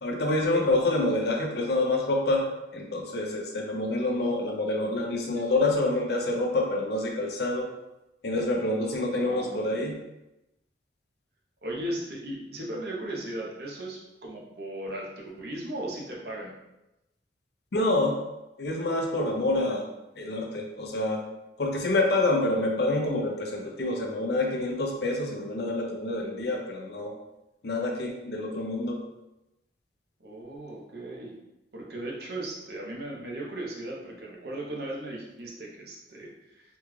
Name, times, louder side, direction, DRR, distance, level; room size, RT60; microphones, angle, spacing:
voice 1, 0.0-7.7 8.2-9.9 17.7-18.2 18.6-19.9 20.2-21.2 21.6-27.1 27.6-29.0, left 2 dB, 60° left, 1 dB, 0.5 m, -27 dB
voice 2, 9.2-9.7 11.6-16.5 30.2-31.4 31.7-36.6, right 1 dB, 55° right, -3 dB, 0.7 m, -37 dB
3.5 x 2.3 x 3.1 m, 0.94 s
head